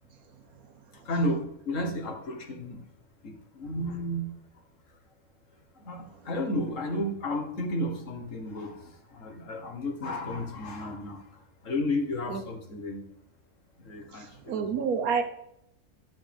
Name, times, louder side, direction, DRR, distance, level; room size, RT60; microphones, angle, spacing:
voice 1, 0.9-2.8 3.2-4.3 5.8-13.1 13.8-14.6, left 1 dB, 60° left, 3 dB, 1.7 m, -33 dB
voice 2, 14.1-15.2, right 6 dB, 90° right, 6 dB, 1.4 m, -29 dB
12.0 x 6.3 x 3.5 m, 0.77 s
omnidirectional pair, 1.5 m